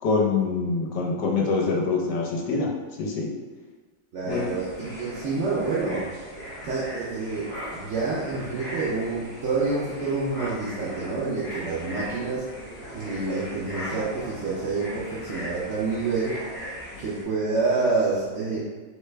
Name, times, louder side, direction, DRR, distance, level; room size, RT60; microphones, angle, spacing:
voice 1, 0.0-2.7 3.0-3.3 4.2-4.5, left 4 dB, 70° left, -1 dB, 1.3 m, -25 dB
voice 2, 4.1-6.1 6.6-16.4 17.0-18.7, right 3 dB, 70° right, -7 dB, 0.6 m, -28 dB
sound 1, 4.3-17.2, equal, 45° left, 1.9 m, -39 dB
4.6 x 3.4 x 3.3 m, 1.4 s
omnidirectional pair, 2.1 m